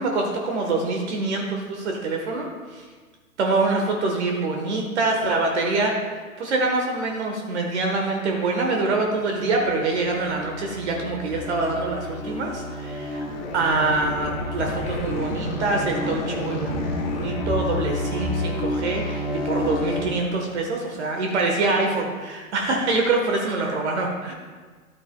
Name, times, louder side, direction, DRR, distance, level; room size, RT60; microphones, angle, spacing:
voice 1, 0.0-2.5 3.4-13.2 13.5-16.8 17.1-24.3, right 3 dB, 50° right, 2 dB, 1.4 m, -25 dB
sound 1, 8.7-20.1, left 1 dB, 45° left, 2.0 m, -30 dB
12.0 x 9.4 x 2.3 m, 1.5 s
figure-of-eight pair, 115°, 43 cm